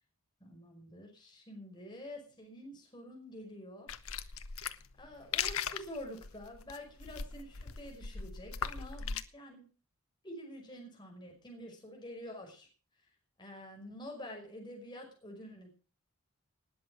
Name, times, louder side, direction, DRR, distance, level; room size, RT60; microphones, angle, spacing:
voice 1, 0.4-3.9 4.2-4.4 5.0-9.7 10.2-12.7 13.4-15.8, left 1 dB, 20° left, 1 dB, 5.2 m, -48 dB
sound 1, 3.9-9.2, left 7 dB, 75° left, 1.0 m, -39 dB
19.5 x 8.0 x 6.2 m, 0.37 s
head